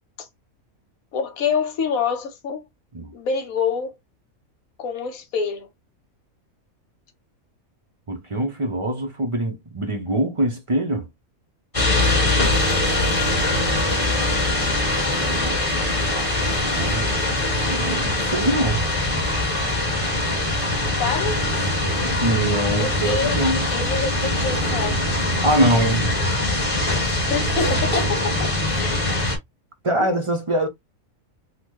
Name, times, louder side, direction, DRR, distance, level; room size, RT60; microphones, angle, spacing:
voice 1, 1.1-2.6 3.1-4.0 4.8-5.7 11.7-12.2 20.8-21.4 22.8-23.3 23.7-25.1 27.3-28.5 28.8-29.0 30.0-30.1, left 5 dB, 80° left, 1.3 m, -26 dB
voice 2, 8.1-11.1 15.2-15.6 15.9-16.3 16.6-17.1 17.7-18.9 22.0-23.7 25.4-26.2 29.8-30.7, right 1 dB, 35° right, 0.5 m, -23 dB
sound 1, 11.7-29.4, left 2 dB, 25° left, 1.3 m, -22 dB
3.9 x 2.2 x 3.0 m
omnidirectional pair, 1.5 m